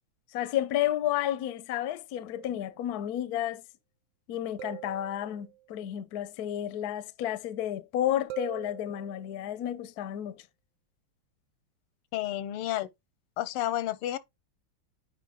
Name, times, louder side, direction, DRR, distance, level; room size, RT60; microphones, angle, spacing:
voice 1, 0.3-3.6 4.3-10.5, left 12 dB, 70° left, 0.9 m, -31 dB
sound 1, 2.3-3.0 4.6-5.7 8.3-9.6, right 15 dB, 75° right, 1.1 m, -44 dB
voice 2, 12.1-12.9 13.4-14.2, left 13 dB, 85° left, 1.6 m, -31 dB
9.6 x 3.5 x 3.6 m
omnidirectional pair, 2.4 m